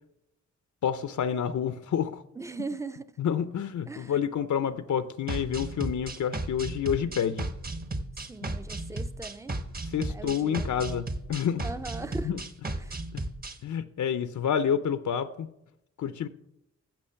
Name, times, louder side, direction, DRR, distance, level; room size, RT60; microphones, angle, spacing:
voice 1, 0.8-2.2 3.2-7.5 9.9-11.6 12.3-12.4 13.1-13.2 13.6-15.5 16.0-16.3, left 8 dB, 85° left, 0.7 m, -28 dB
voice 2, 2.3-3.2 3.9-4.2 8.3-9.6 10.1-10.8 11.6-12.4 12.8-13.0, right 3 dB, 10° right, 0.5 m, -39 dB
sound 1, 5.3-13.6, right 2 dB, 30° right, 1.1 m, -35 dB
15.0 x 6.0 x 5.7 m
wide cardioid pair, 115°, 29 cm